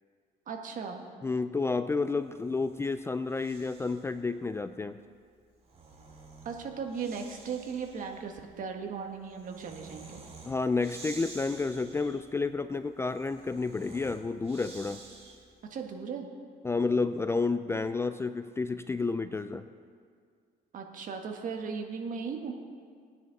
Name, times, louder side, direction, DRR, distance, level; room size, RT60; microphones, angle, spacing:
voice 1, 0.5-1.0 6.4-10.2 15.7-16.3 20.7-22.5, right 6 dB, 50° right, 3 dB, 1.6 m, -37 dB
voice 2, 1.2-5.0 10.4-15.0 16.6-19.7, left 4 dB, 15° left, 11 dB, 0.4 m, -30 dB
Breathing, 2.2-4.2 5.4-15.7, right 3 dB, 35° right, 2.2 m, -51 dB
20.0 x 9.6 x 4.1 m, 2.1 s
cardioid pair, 110°, 17 cm